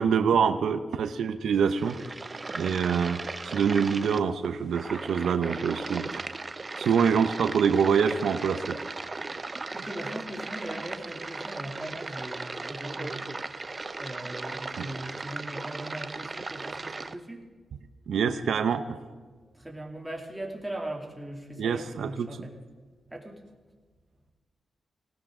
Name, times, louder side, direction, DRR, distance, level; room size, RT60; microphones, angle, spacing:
voice 1, 0.0-2.0 2.5-3.2 3.5-6.2 6.8-8.8 14.8-14.9 18.1-19.0 21.6-22.5, right 6 dB, 85° right, 9 dB, 0.8 m, -25 dB
sound 1, 1.5-17.1, right 3 dB, 30° right, 0.7 m, -37 dB
voice 2, 9.7-13.6 14.0-17.4 19.5-22.5 23.1-23.4, right 1 dB, 10° right, 0 dB, 2.8 m, -39 dB
19.5 x 17.5 x 3.8 m, 1.4 s
cardioid pair, 90°, 0 cm